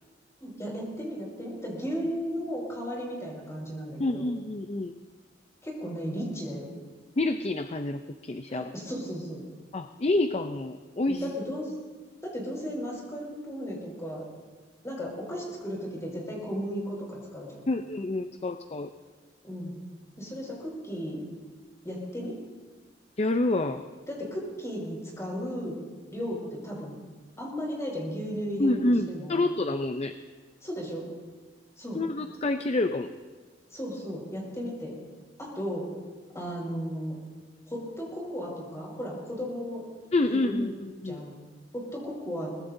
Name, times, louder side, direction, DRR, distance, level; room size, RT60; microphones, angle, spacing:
voice 1, 0.4-4.3 5.6-6.7 8.5-9.4 11.1-11.7 12.2-14.3 14.8-17.6 19.4-19.8 20.2-21.2 21.8-22.4 24.1-25.8 26.1-26.9 27.4-29.4 30.6-31.0 31.8-32.0 33.7-34.9 35.4-35.9 36.3-37.1 37.7-39.8 40.2-40.7 41.1-41.4 41.7-42.5, equal, 15° left, -2 dB, 5.2 m, -35 dB
voice 2, 4.0-4.9 7.2-8.7 9.7-11.2 17.7-18.9 23.2-23.8 28.6-30.1 31.9-33.1 40.1-41.2, left 2 dB, 35° left, 8 dB, 0.5 m, -28 dB
23.0 x 19.5 x 2.7 m, 1.4 s
head